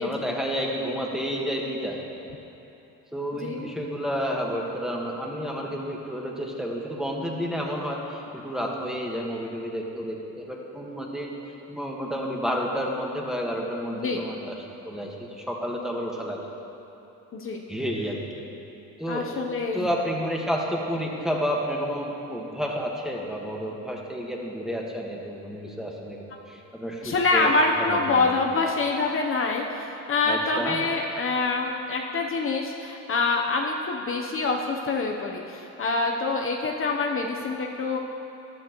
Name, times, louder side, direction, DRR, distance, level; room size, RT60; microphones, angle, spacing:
voice 1, 0.0-2.0 3.1-11.4 11.7-14.5 14.8-16.4 17.7-18.4 19.0-19.3 19.7-28.3 30.2-30.9, equal, ahead, -2 dB, 1.5 m, -30 dB
voice 2, 3.3-3.6 13.9-14.2 17.3-17.6 19.1-19.9 27.0-38.0, left 3 dB, 45° left, 1 dB, 0.9 m, -26 dB
14.0 x 11.0 x 3.1 m, 2.9 s
cardioid pair, 90°, 30 cm